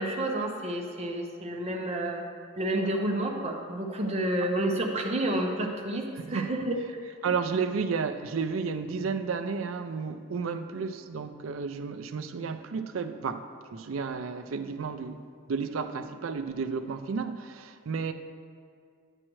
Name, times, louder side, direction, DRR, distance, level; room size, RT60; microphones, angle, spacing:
voice 1, 0.0-2.2 2.6-6.7, right 1 dB, 30° right, 1 dB, 0.8 m, -30 dB
voice 2, 7.2-15.2 15.5-18.1, right 5 dB, 75° right, 9 dB, 0.4 m, -32 dB
9.9 x 7.5 x 3.1 m, 2.2 s
head